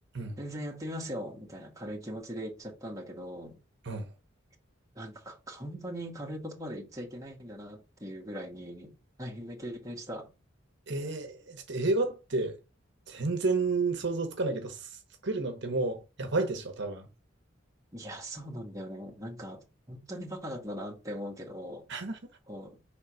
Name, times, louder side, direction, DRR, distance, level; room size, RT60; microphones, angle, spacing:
voice 1, 0.4-3.6 5.0-10.3 17.9-21.9 22.5-22.8, equal, 15° right, 1.6 m, -40 dB
voice 2, 10.9-12.6 13.1-17.1 21.9-22.2, right 3 dB, 65° right, 1.2 m, -31 dB
5.2 x 4.0 x 4.9 m
head